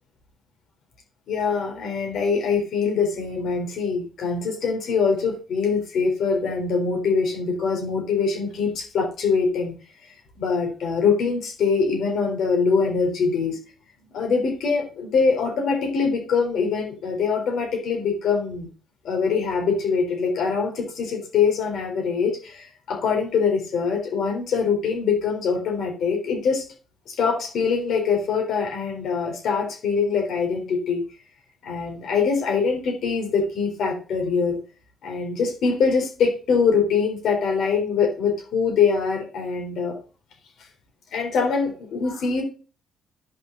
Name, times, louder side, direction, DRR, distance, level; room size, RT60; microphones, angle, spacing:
voice 1, 1.3-9.8 10.4-13.6 14.1-18.7 19.0-26.6 27.1-31.0 31.6-34.6 35.0-40.0 41.1-42.4, left 5 dB, 70° left, 2 dB, 4.0 m, -23 dB
11.0 x 5.6 x 4.0 m, 0.36 s
cardioid pair, 90°, 0 cm